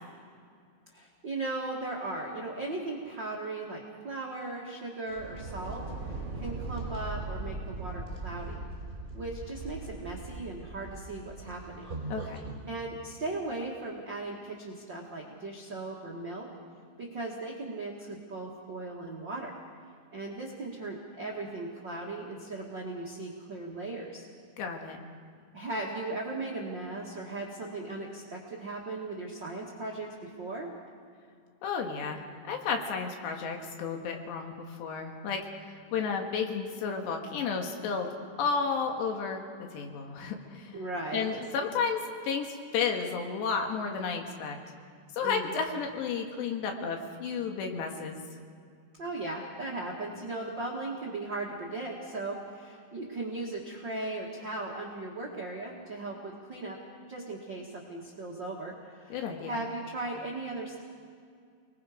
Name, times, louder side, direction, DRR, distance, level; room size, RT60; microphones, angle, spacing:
voice 1, 0.9-8.6 9.1-11.9 12.7-16.5 17.0-19.5 20.1-24.2 25.5-30.7 40.7-41.3 45.2-45.6 49.0-56.8 57.1-60.8, right 2 dB, 70° right, -3 dB, 1.0 m, -37 dB
sound 1, 5.1-12.6, right 3 dB, 20° right, 3.4 m, -39 dB
voice 2, 12.1-12.5 24.6-25.0 31.6-39.4 39.7-40.8 41.1-44.6 45.1-48.2 59.1-59.6, left 5 dB, 70° left, 3 dB, 3.7 m, -32 dB
29.5 x 20.5 x 5.1 m, 2.2 s
omnidirectional pair, 5.5 m